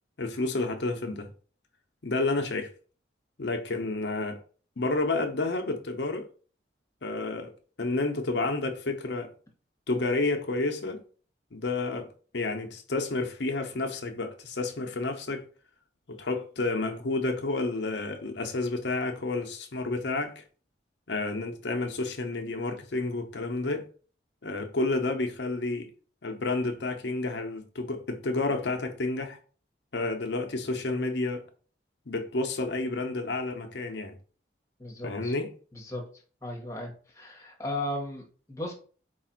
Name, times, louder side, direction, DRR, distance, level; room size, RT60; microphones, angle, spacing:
voice 1, 0.2-1.3 2.0-2.7 3.4-4.4 4.8-6.3 7.0-7.5 7.8-9.3 9.9-11.0 11.5-15.5 16.1-20.4 21.1-23.9 24.4-25.9 26.2-29.4 29.9-31.4 32.1-34.1 35.0-35.5, left 2 dB, 70° left, 0.8 m, -30 dB
voice 2, 34.8-35.3 35.7-36.0 36.4-38.7, left 1 dB, 15° left, 1.1 m, -36 dB
4.6 x 2.5 x 4.4 m
head